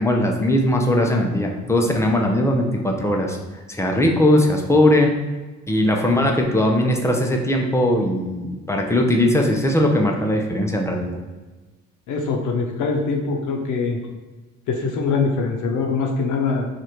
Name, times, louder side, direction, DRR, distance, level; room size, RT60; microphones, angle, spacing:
voice 1, 0.0-3.4 3.7-5.1 5.7-11.2, left 1 dB, 10° left, 1 dB, 0.6 m, -19 dB
voice 2, 12.1-14.0 14.7-16.7, left 4 dB, 75° left, 2 dB, 0.7 m, -23 dB
3.1 x 2.5 x 4.3 m, 1.3 s
cardioid pair, 90°, 30 cm